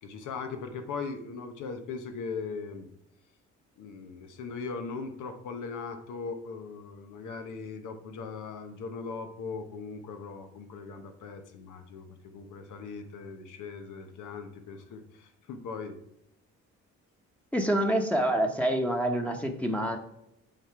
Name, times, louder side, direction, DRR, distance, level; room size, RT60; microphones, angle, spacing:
voice 1, 0.0-2.9 3.8-16.0, left 4 dB, 80° left, 7 dB, 1.1 m, -39 dB
voice 2, 17.5-20.0, right 1 dB, 5° left, 2 dB, 1.0 m, -27 dB
7.9 x 4.2 x 4.6 m, 0.80 s
cardioid pair, 90°, 30 cm